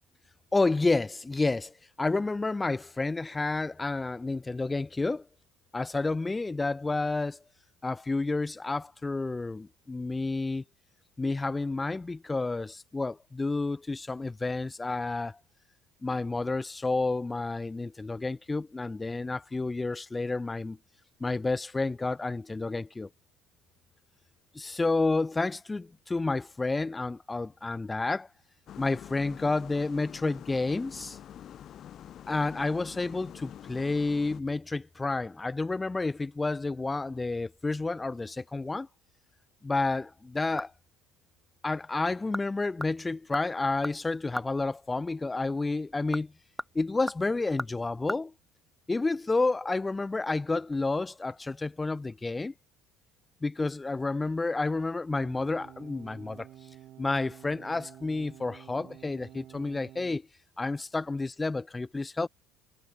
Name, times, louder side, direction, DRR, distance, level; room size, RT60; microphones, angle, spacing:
voice 1, 0.5-5.3 5.7-7.4 7.8-10.6 11.2-15.4 16.0-20.8 21.2-23.1 24.5-28.3 28.8-31.2 32.3-38.9 39.6-40.7 41.6-46.3 46.7-48.3 48.9-52.5 53.4-56.5 57.0-60.2 60.6-62.3, left 3 dB, 15° left, 1.1 m, -30 dB
sound 1, 28.7-34.4, left 10 dB, 50° left, 3.8 m, -46 dB
sound 2, 40.1-41.0 41.3-41.4 42.1-42.5 42.8-44.6 45.9-48.2 48.5-48.6, equal, ahead, 1.4 m, -39 dB
sound 3, 55.1-60.2, right 13 dB, 55° right, 2.0 m, -50 dB
hypercardioid pair, 65°, 0 cm